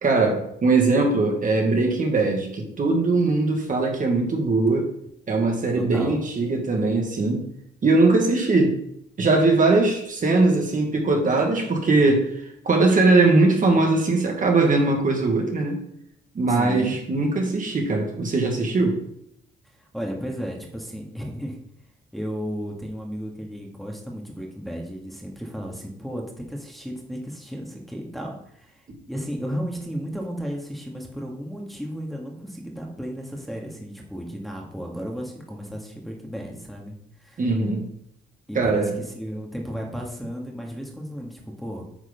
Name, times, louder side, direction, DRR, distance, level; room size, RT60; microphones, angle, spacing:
voice 1, 0.0-4.9 5.3-7.5 7.8-8.8 9.2-15.8 16.4-19.0 37.4-37.8 38.6-38.9, right 3 dB, 40° right, 1 dB, 2.0 m, -20 dB
voice 2, 5.8-6.2 16.5-17.0 19.6-21.6 22.1-37.4 38.5-41.8, equal, ahead, -1 dB, 2.0 m, -34 dB
9.0 x 4.7 x 5.3 m, 0.73 s
cardioid pair, 90°, 20 cm